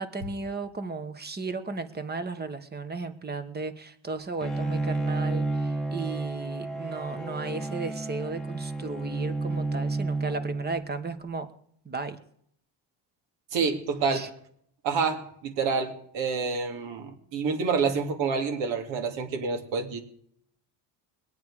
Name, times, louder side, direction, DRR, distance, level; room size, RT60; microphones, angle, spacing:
voice 1, 0.0-11.5 11.9-12.2 14.1-14.3, right 3 dB, 20° right, 11 dB, 1.2 m, -35 dB
Bowed string instrument, 4.4-11.1, right 2 dB, ahead, 1.1 m, -31 dB
voice 2, 13.5-14.3 14.8-20.0, right 5 dB, 75° right, 4 dB, 2.6 m, -28 dB
22.0 x 8.7 x 4.9 m, 0.68 s
cardioid pair, 135°, 44 cm